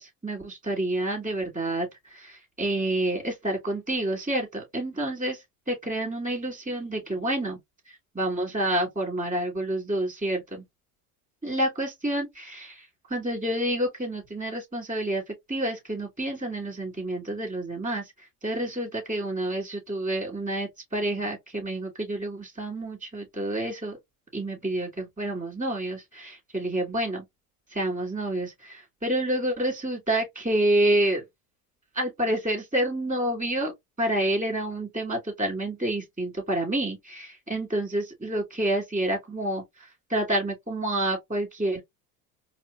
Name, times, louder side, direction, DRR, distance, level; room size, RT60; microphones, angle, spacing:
voice 1, 0.0-5.4 5.7-7.6 7.9-10.6 11.4-18.0 18.4-24.0 24.3-27.2 27.7-31.2 31.9-33.7 34.0-39.6 40.1-41.8, right 1 dB, 15° right, 2.5 m, -28 dB
4.2 x 3.1 x 2.3 m
hypercardioid pair, 80°, 44 cm